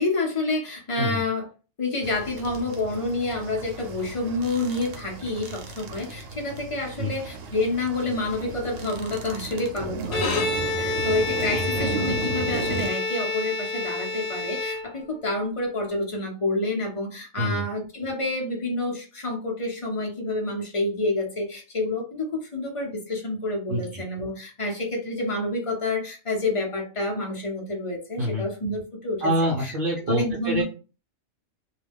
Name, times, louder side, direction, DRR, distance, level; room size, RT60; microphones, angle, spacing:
voice 1, 0.0-1.5 1.8-29.7 30.1-30.6, left 2 dB, 35° left, 0 dB, 0.6 m, -28 dB
sound 1, 2.0-12.9, right 3 dB, 75° right, 0.9 m, -35 dB
Bowed string instrument, 10.0-15.3, left 3 dB, 85° left, 0.3 m, -28 dB
voice 2, 11.5-11.9 17.4-17.6 23.7-24.0 28.2-28.4 29.2-30.6, right 1 dB, 55° right, 0 dB, 0.6 m, -26 dB
2.3 x 2.2 x 3.3 m, 0.35 s
omnidirectional pair, 1.4 m